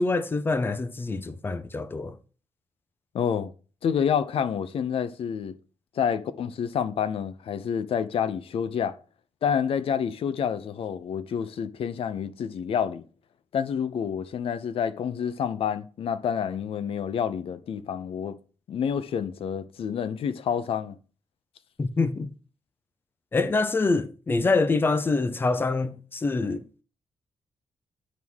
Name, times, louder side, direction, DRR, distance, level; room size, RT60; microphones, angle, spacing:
voice 1, 0.0-2.1 21.8-22.3 23.3-26.6, left 3 dB, 20° left, 0.6 m, -25 dB
voice 2, 3.1-3.5 3.8-5.5 6.0-9.0 9.4-13.0 13.5-18.4 18.7-21.0, left 7 dB, 60° left, 0.7 m, -28 dB
9.3 x 3.6 x 6.2 m
wide cardioid pair, 175°, 11 cm